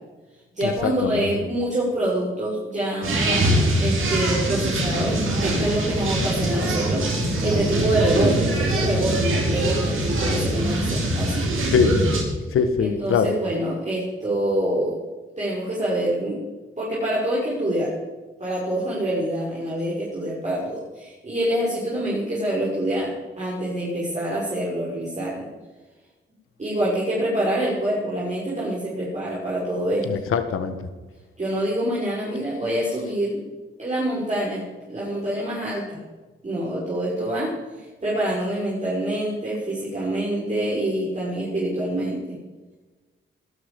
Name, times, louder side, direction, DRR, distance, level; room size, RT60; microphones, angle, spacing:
voice 1, 0.5-3.5 3.8-11.4 12.8-15.0 15.4-16.4 16.8-17.9 18.4-23.1 23.4-25.5 26.6-30.0 31.4-33.4 33.8-34.6 34.9-36.0 36.4-42.3, right 1 dB, 35° right, -7 dB, 6.3 m, -26 dB
sound 1, 3.0-12.2, right 1 dB, 70° right, 5.7 m, -23 dB
voice 2, 11.6-12.0 12.5-13.3 30.1-30.8, left 6 dB, 85° left, 9 dB, 1.6 m, -22 dB
20.0 x 13.0 x 5.4 m, 1.2 s
cardioid pair, 65°, 21 cm